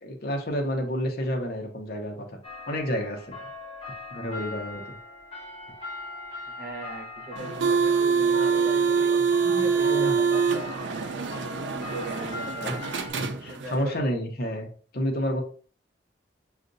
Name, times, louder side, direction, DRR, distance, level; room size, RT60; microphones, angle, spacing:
voice 1, 0.0-2.4 2.7-3.3 4.1-5.0 9.9-10.1 12.6-12.8 13.2-15.4, equal, 55° left, 3 dB, 0.9 m, -30 dB
sound 1, 2.4-13.1, left 1 dB, 30° left, 1.3 m, -40 dB
voice 2, 6.5-9.0 9.4-11.3 11.7-12.8 13.5-14.0, right 1 dB, 55° right, 0 dB, 1.1 m, -39 dB
sound 2, 7.4-13.8, right 5 dB, 90° right, 0.5 m, -25 dB
6.4 x 2.5 x 2.6 m, 0.43 s
head